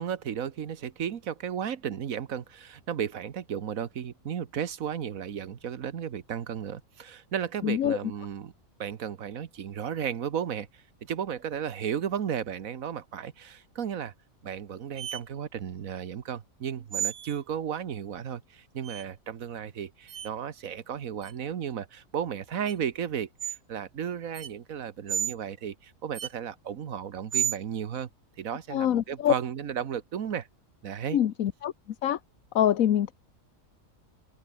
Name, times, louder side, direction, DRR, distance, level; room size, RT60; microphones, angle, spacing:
voice 1, 0.0-8.5 8.8-14.1 14.4-28.1 28.4-30.5 30.8-31.2, right 8 dB, 80° right, 1.6 m, -34 dB
voice 2, 7.6-8.0 28.7-29.3 31.1-31.7 32.0-32.2 32.5-33.1, left 10 dB, 80° left, 1.3 m, -24 dB
sound 1, 15.0-15.2 16.9-17.4 18.8-19.0 20.1-20.3 21.2-21.3 22.6-22.7 23.4-23.6 24.3-24.5 25.1-25.3 26.1-26.3 27.3-27.6, right 9 dB, 50° right, 0.8 m, -31 dB
omnidirectional pair, 1.4 m